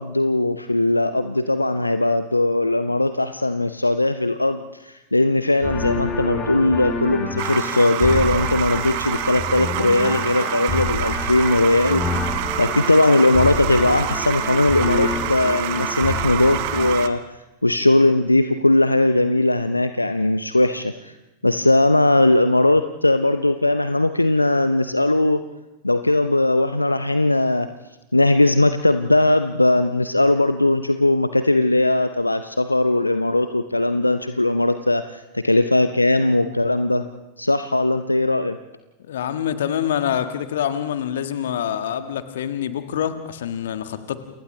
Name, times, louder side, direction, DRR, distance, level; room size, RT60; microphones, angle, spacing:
voice 1, 0.0-21.2 21.4-25.4 25.8-27.7 28.1-37.0 37.4-38.6, left 2 dB, 85° left, 10 dB, 0.7 m, -19 dB
sound 1, 5.6-17.0, left 3 dB, 25° left, 7.2 m, -28 dB
sound 2, 7.4-17.1, right 13 dB, 45° right, 1.2 m, -27 dB
voice 2, 39.1-44.2, left 9 dB, 60° left, 9 dB, 1.6 m, -26 dB
29.0 x 29.0 x 3.2 m, 0.98 s
figure-of-eight pair, 90°, 0 cm